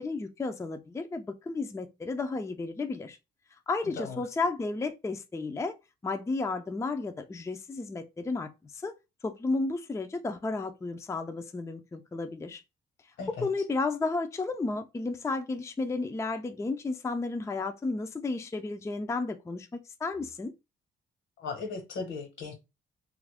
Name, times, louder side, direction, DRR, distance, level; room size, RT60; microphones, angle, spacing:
voice 1, 0.0-3.2 3.7-5.8 6.0-8.9 9.2-12.6 13.3-19.7 20.0-20.5, left 3 dB, 15° left, 0.4 m, -32 dB
voice 2, 3.8-4.2 13.2-13.5 21.4-22.5, left 4 dB, 75° left, 1.3 m, -37 dB
2.9 x 2.5 x 3.4 m
cardioid pair, 90°, 20 cm